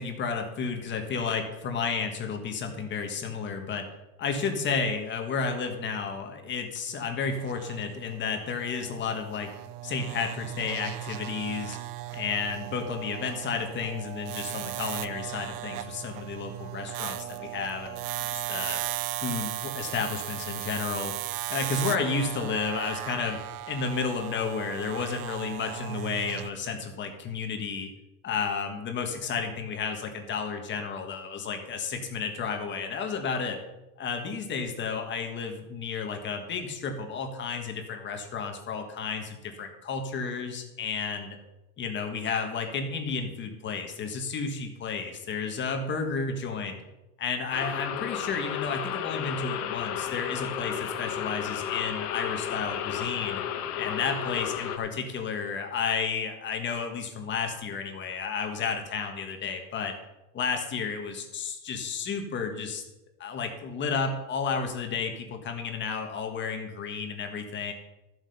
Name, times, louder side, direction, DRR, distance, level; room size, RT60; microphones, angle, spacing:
voice 1, 0.0-3.9 4.2-9.5 9.8-11.8 12.1-18.0 18.3-18.8 19.2-21.1 21.5-23.4 23.7-27.9 28.2-33.6 34.0-41.4 41.8-46.8 47.2-53.4 53.7-59.9 60.3-62.8 63.2-67.7, left 5 dB, 25° left, 4 dB, 1.5 m, -32 dB
sound 1, 7.2-26.5, right 14 dB, 85° right, 0.8 m, -37 dB
sound 2, 47.5-54.8, left 9 dB, 80° left, 1.5 m, -33 dB
13.0 x 7.9 x 5.5 m, 0.98 s
supercardioid pair, 160°, 46 cm